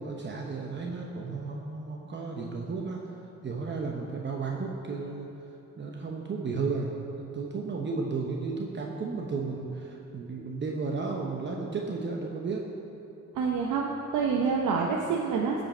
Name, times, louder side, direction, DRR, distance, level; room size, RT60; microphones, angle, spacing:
voice 1, 0.0-5.3 5.8-6.9 7.2-12.6, right 4 dB, 40° right, 0 dB, 0.9 m, -33 dB
voice 2, 13.3-15.6, right 5 dB, 80° right, -1 dB, 0.8 m, -27 dB
15.5 x 5.4 x 4.4 m, 2.9 s
cardioid pair, 90°, 30 cm